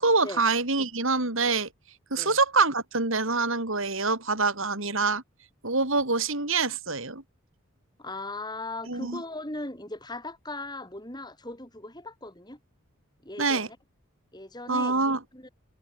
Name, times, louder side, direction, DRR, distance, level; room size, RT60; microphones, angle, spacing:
voice 1, 0.0-1.7 2.1-5.2 5.6-7.2 8.9-9.2 13.4-13.7 14.7-15.2, right 3 dB, 60° right, 4.0 m, -25 dB
voice 2, 8.0-12.6 13.2-13.8 14.3-15.5, left 2 dB, 20° left, 4.3 m, -38 dB
head